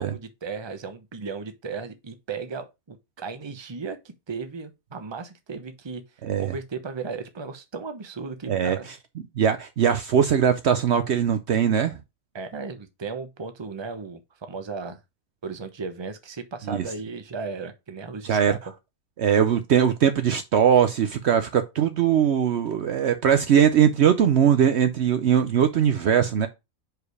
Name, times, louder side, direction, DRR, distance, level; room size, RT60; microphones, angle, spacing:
voice 1, 0.0-6.0 6.4-8.9 12.3-15.0 15.4-18.6, right 4 dB, 25° right, 0.8 m, -35 dB
voice 2, 6.2-6.5 8.5-8.8 9.4-12.0 16.7-16.9 18.2-18.5 19.2-26.5, right 8 dB, 65° right, 0.8 m, -20 dB
5.0 x 4.9 x 4.7 m
omnidirectional pair, 1.4 m